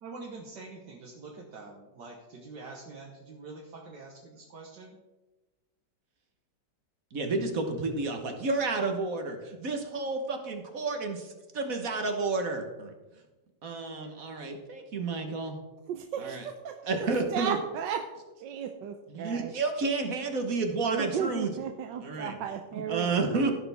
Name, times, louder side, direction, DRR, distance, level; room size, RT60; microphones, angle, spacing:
voice 1, 0.0-5.0, right 3 dB, 70° right, -1 dB, 1.8 m, -45 dB
voice 2, 7.1-12.9 13.6-15.6 16.2-16.5 16.8-17.6 19.1-21.5 22.0-22.5 22.9-23.5, right 3 dB, 55° right, 5 dB, 1.5 m, -31 dB
voice 3, 15.9-17.1 17.3-18.0 18.4-19.5 20.8-23.2, right 8 dB, 85° right, 6 dB, 1.3 m, -34 dB
16.5 x 6.6 x 3.4 m, 1.1 s
omnidirectional pair, 1.9 m